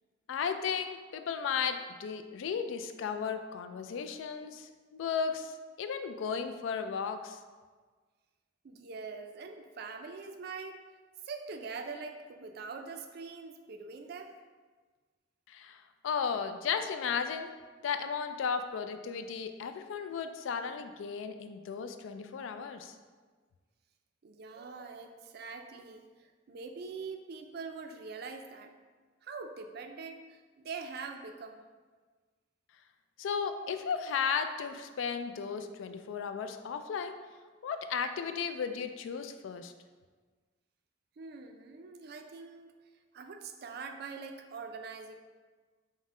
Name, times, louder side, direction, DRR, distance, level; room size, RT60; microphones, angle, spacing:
voice 1, 0.3-7.4 15.5-17.5 17.8-22.9 33.2-37.1 37.6-39.7, left 6 dB, 80° left, 8 dB, 0.3 m, -35 dB
voice 2, 8.6-10.8 11.2-14.3 24.2-28.7 29.2-31.6 41.2-42.7 43.1-45.1, right 4 dB, 55° right, 5 dB, 0.4 m, -43 dB
5.4 x 2.1 x 3.6 m, 1.4 s
head